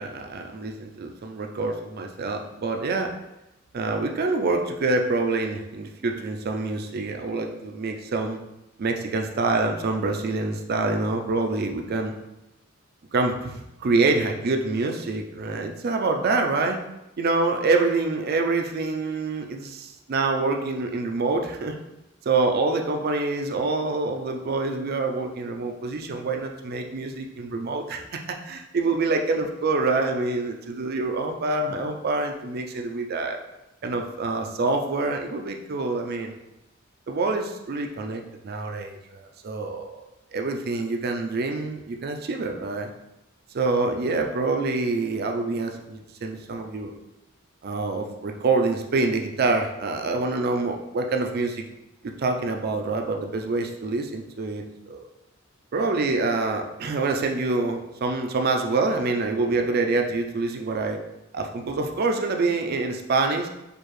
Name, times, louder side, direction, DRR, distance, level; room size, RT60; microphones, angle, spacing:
voice 1, 0.0-3.1 3.7-8.4 8.8-12.1 13.1-16.8 17.2-21.8 22.3-33.4 33.8-36.4 37.1-40.0 40.3-42.9 43.5-46.9 47.6-51.6 52.0-55.1 55.7-61.0 61.3-63.5, right 3 dB, 50° right, 4 dB, 0.4 m, -26 dB
4.5 x 2.5 x 3.1 m, 0.93 s
head